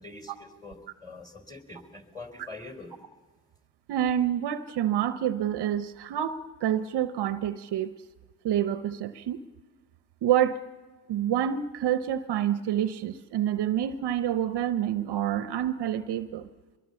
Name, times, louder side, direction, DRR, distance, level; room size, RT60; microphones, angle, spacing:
voice 1, 0.0-3.0, left 3 dB, 10° left, 6 dB, 4.1 m, -44 dB
voice 2, 3.9-7.9 8.4-9.4 10.2-10.6 11.1-16.5, right 10 dB, 55° right, 12 dB, 0.9 m, -27 dB
24.0 x 21.5 x 7.1 m, 1.4 s
supercardioid pair, 70°, 47 cm